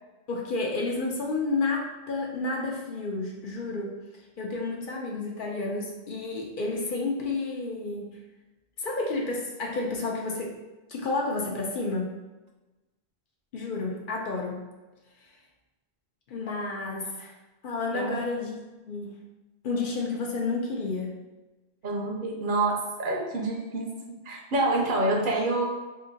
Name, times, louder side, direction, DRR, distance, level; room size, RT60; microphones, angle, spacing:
voice 1, 0.3-4.0 4.4-8.2 8.8-10.6 10.9-12.1 13.5-14.6 16.3-17.3 17.6-19.2 19.6-21.1, left 3 dB, 60° left, 0 dB, 0.7 m, -31 dB
voice 2, 21.8-23.9 24.3-25.6, right 2 dB, 60° right, 0 dB, 0.7 m, -27 dB
2.8 x 2.6 x 3.9 m, 1.1 s
omnidirectional pair, 1.0 m